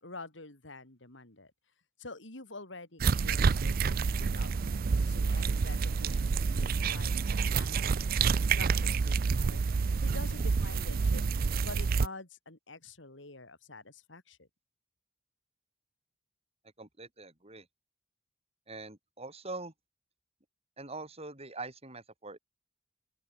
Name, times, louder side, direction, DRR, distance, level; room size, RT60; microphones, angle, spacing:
voice 1, 0.0-1.5 2.0-7.1 7.4-8.1 8.5-9.6 10.0-14.5, left 3 dB, 70° left, 4.0 m, -48 dB
cat eat grass, 3.0-12.1, right 5 dB, 50° right, 0.4 m, -28 dB
voice 2, 16.8-17.7 18.7-19.7 20.8-22.4, right 3 dB, 35° right, 7.7 m, -43 dB
open air
head